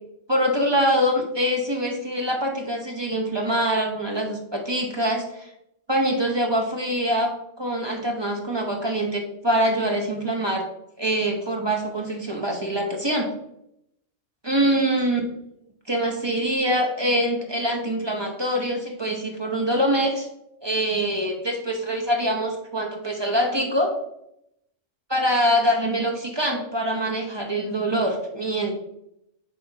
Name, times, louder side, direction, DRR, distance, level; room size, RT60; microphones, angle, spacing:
voice 1, 0.3-5.5 5.9-10.6 11.0-13.3 14.4-15.2 15.9-20.3 20.6-23.9 25.1-28.7, equal, 25° right, 1 dB, 0.7 m, -24 dB
7.8 x 4.3 x 2.8 m, 0.79 s
omnidirectional pair, 1.3 m